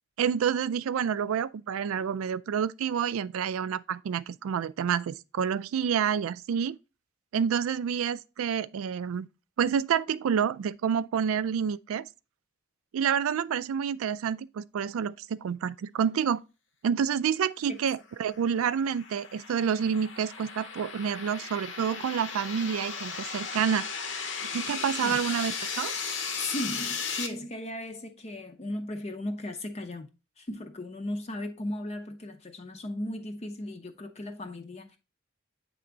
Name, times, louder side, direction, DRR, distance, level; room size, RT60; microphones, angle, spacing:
voice 1, 0.2-6.8 7.3-9.3 9.6-12.1 12.9-16.4 16.8-23.8 24.5-25.9, right 7 dB, 85° right, 0.3 m, -28 dB
sound 1, 18.3-27.3, left 5 dB, 60° left, 0.9 m, -36 dB
voice 2, 26.4-30.1 30.4-35.0, left 1 dB, 30° left, 0.6 m, -36 dB
8.5 x 3.4 x 3.8 m
head